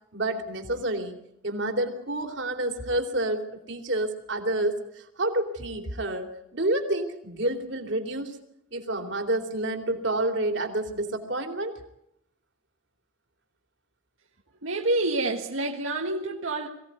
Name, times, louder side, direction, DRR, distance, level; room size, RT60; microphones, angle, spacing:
voice 1, 0.1-1.2 1.4-8.4 8.7-11.8, right 1 dB, 60° right, 4 dB, 2.9 m, -29 dB
voice 2, 14.6-16.7, right 2 dB, 85° right, 1 dB, 1.7 m, -27 dB
23.0 x 17.0 x 9.4 m, 0.79 s
head